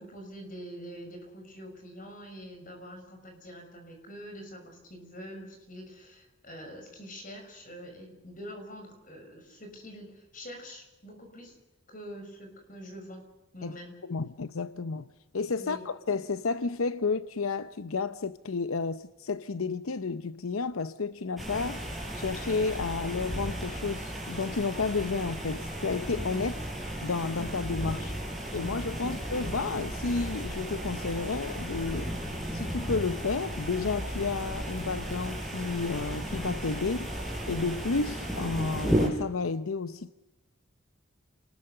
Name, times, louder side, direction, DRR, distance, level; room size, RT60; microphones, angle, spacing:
voice 1, 0.0-11.6 11.9-13.3 13.5-13.9 15.6-15.9 29.0-29.2, equal, 40° left, 6.2 m, -45 dB
voice 2, 14.0-15.1 15.3-21.8 22.1-26.6 27.0-28.1 28.5-32.2 32.5-37.2 37.5-40.3, left 4 dB, 85° left, 0.7 m, -31 dB
sound 1, 21.4-39.1, right 1 dB, ahead, 5.2 m, -34 dB
28.0 x 20.0 x 6.7 m
head